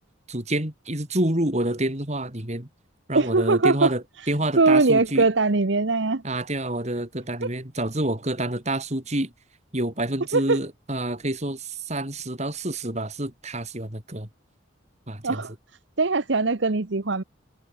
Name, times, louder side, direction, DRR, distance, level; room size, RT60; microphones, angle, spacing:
voice 1, 0.3-2.7 3.1-5.3 6.2-9.3 9.7-14.3 15.1-15.4, right 1 dB, 35° right, 4.2 m, -28 dB
voice 2, 3.1-3.9 4.6-6.2 10.3-10.6 15.2-15.5 16.0-17.2, right 3 dB, 65° right, 1.0 m, -21 dB
head